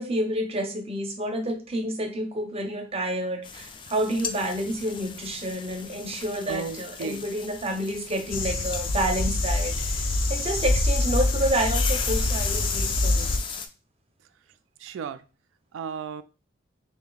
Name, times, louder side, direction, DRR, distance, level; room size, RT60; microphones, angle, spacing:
voice 1, 0.0-13.3, right 1 dB, 30° right, 5 dB, 0.7 m, -29 dB
sound 1, 3.4-13.7, left 6 dB, 25° left, 0.3 m, -37 dB
voice 2, 6.5-7.2 14.8-15.2 15.7-16.2, right 5 dB, 80° right, 13 dB, 0.3 m, -34 dB
sound 2, 8.3-13.4, left 2 dB, 80° left, 0.6 m, -25 dB
3.3 x 2.7 x 3.8 m, 0.33 s
head